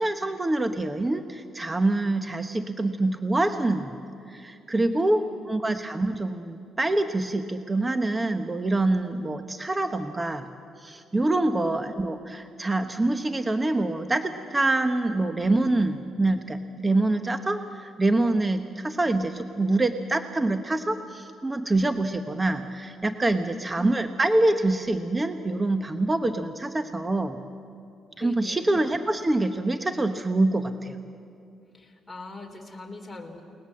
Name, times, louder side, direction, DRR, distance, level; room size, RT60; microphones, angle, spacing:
voice 1, 0.0-4.0 4.3-5.2 5.5-10.5 10.8-27.4 28.2-31.0, right 2 dB, 20° right, 8 dB, 1.1 m, -25 dB
voice 2, 4.9-5.3 11.4-11.7 23.3-23.8 28.1-28.8 31.7-33.4, left 3 dB, 15° left, 1 dB, 3.9 m, -42 dB
29.5 x 19.5 x 7.7 m, 2.4 s
cardioid pair, 90°, 0 cm